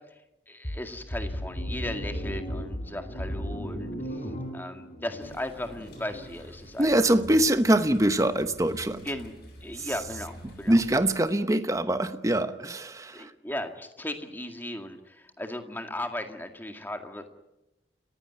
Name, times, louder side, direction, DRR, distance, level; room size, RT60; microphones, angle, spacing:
voice 1, 0.5-7.2 9.0-9.3 9.6-10.8 13.1-17.3, left 1 dB, 10° left, 6 dB, 2.0 m, -37 dB
sound 1, 0.6-6.3, equal, 40° left, 4.5 m, -35 dB
sound 2, 5.2-11.1, left 1 dB, 55° left, 7.1 m, -48 dB
voice 2, 6.8-9.0 9.8-9.9 10.7-13.3, right 1 dB, 15° right, 10 dB, 0.9 m, -23 dB
30.0 x 15.5 x 9.6 m, 0.92 s
head